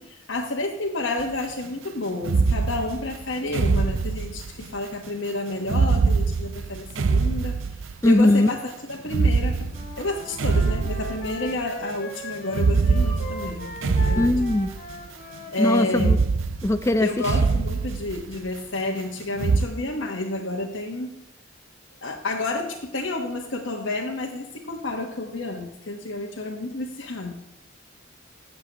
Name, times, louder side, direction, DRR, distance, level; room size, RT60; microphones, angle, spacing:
voice 1, 0.0-7.6 8.0-14.4 15.5-16.2 17.0-21.2 22.0-27.3, left 2 dB, 75° left, 0 dB, 1.2 m, -30 dB
sound 1, 1.2-1.3 2.2-4.8 5.6-8.1 9.1-11.5 12.5-15.0 15.9-18.4 19.3-19.6, right 4 dB, 80° right, 0.5 m, -23 dB
voice 2, 8.0-8.5 14.2-14.7 15.6-16.2 16.6-17.1, left 1 dB, 15° left, 10 dB, 0.4 m, -19 dB
Wind instrument woodwind instrument, 9.7-16.0, left 1 dB, 45° left, 1.9 m, -38 dB
16.5 x 6.8 x 2.9 m, 0.85 s
head